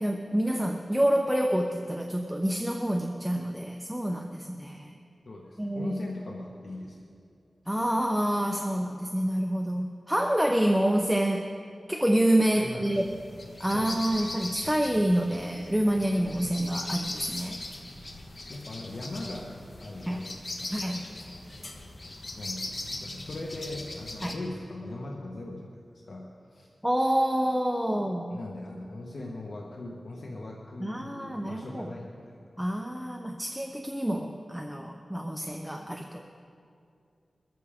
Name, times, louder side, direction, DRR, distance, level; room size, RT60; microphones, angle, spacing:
voice 1, 0.0-4.9 5.6-6.0 7.7-11.4 11.9-13.0 13.6-17.6 20.1-20.2 20.7-21.0 24.2-24.3 26.8-28.4 30.8-31.9 32.6-36.2, right 1 dB, 5° right, 2 dB, 0.9 m, -27 dB
voice 2, 5.2-7.0 12.5-13.2 13.7-14.4 18.5-21.9 22.3-25.8 26.0-26.7 28.0-32.4, left 2 dB, 70° left, -1 dB, 1.4 m, -40 dB
sound 1, 12.9-24.3, left 2 dB, 50° left, 1.5 m, -40 dB
22.5 x 14.0 x 3.7 m, 2.5 s
wide cardioid pair, 65°, 0 cm